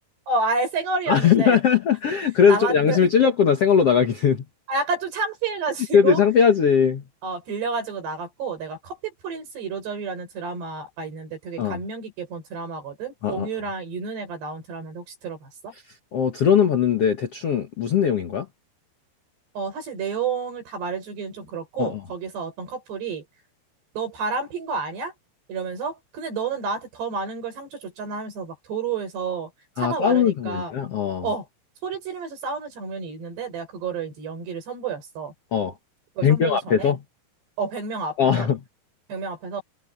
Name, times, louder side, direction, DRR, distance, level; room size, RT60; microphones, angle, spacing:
voice 1, 0.3-1.6 2.5-3.0 4.7-6.2 7.2-9.0 9.2-15.7 19.5-23.2 23.9-25.1 25.5-29.5 29.8-30.7 31.2-31.5 31.8-35.3 36.2-36.9 37.6-38.5 39.1-39.6, right 4 dB, 70° right, 8.2 m, -30 dB
voice 2, 1.1-4.4 5.9-7.0 11.6-11.8 13.2-13.5 16.1-18.4 21.8-22.0 29.8-31.3 35.5-35.7 36.2-37.0 38.2-38.6, left 7 dB, 70° left, 1.4 m, -20 dB
omnidirectional pair, 5.0 m